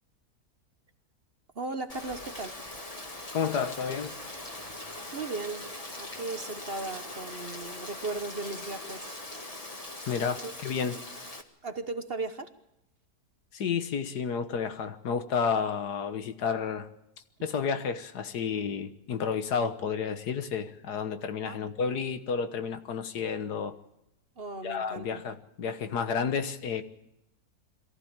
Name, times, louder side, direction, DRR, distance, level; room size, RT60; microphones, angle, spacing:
voice 1, 1.5-2.6 5.1-9.2 10.4-10.5 11.6-12.5 21.4-21.6 24.4-25.2, right 3 dB, 40° right, 9 dB, 1.2 m, -37 dB
Rain, 1.9-11.4, left 2 dB, 20° left, 1.7 m, -41 dB
voice 2, 3.3-4.1 10.1-11.0 13.5-16.9 17.4-23.8 24.6-26.8, left 6 dB, 75° left, 10 dB, 1.8 m, -31 dB
22.5 x 15.0 x 8.8 m, 0.86 s
omnidirectional pair, 1.7 m